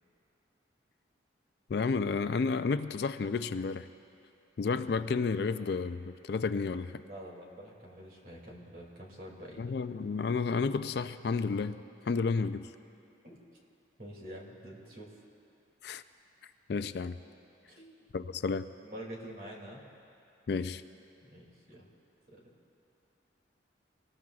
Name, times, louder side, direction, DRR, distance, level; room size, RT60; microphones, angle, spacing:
voice 1, 1.7-3.9 4.6-7.0 9.6-12.7 15.8-16.0 16.7-17.2 18.1-18.7 20.5-20.8, left 4 dB, 60° left, 11 dB, 0.4 m, -31 dB
voice 2, 7.0-9.8 13.2-13.4 14.0-15.2 17.8-18.0 18.8-19.8 21.2-21.9 22.3-22.4, equal, 50° right, -2 dB, 2.4 m, -47 dB
24.0 x 19.5 x 2.4 m, 2.7 s
head